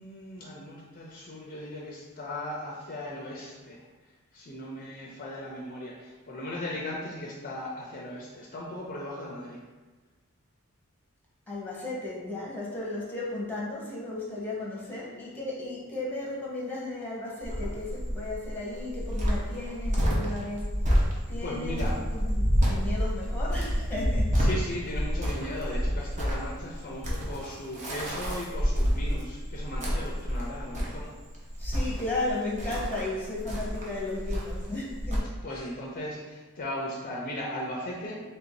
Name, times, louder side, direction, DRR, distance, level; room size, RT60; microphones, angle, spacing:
voice 1, 0.0-3.8 4.3-9.6 19.6-19.7 21.4-21.9 24.3-31.1 35.4-38.2, left 1 dB, 40° left, -3 dB, 0.5 m, -37 dB
voice 2, 11.5-20.7 21.3-24.5 31.6-35.3 35.5-35.7, left 2 dB, 5° left, -5 dB, 0.9 m, -35 dB
Cricket, 17.4-35.2, equal, 35° right, 0.8 m, -29 dB
3.3 x 2.7 x 4.4 m, 1.3 s
head